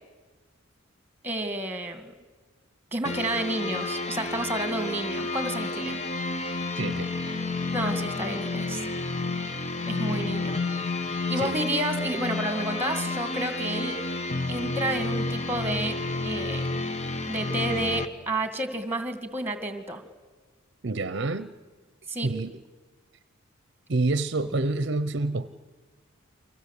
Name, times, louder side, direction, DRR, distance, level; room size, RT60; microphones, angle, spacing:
voice 1, 1.2-2.1 2.9-6.0 7.7-8.8 9.9-10.6 11.3-14.0 14.5-16.0 16.2-16.6 17.3-20.0 22.1-22.3, right 1 dB, 10° right, 2.2 m, -30 dB
sound 1, 3.0-18.1, left 3 dB, 30° left, 1.1 m, -30 dB
voice 2, 6.8-7.1 11.4-11.6 20.8-21.5 22.2-22.6 23.9-25.5, right 2 dB, 55° right, 0.8 m, -27 dB
29.5 x 24.5 x 8.3 m
head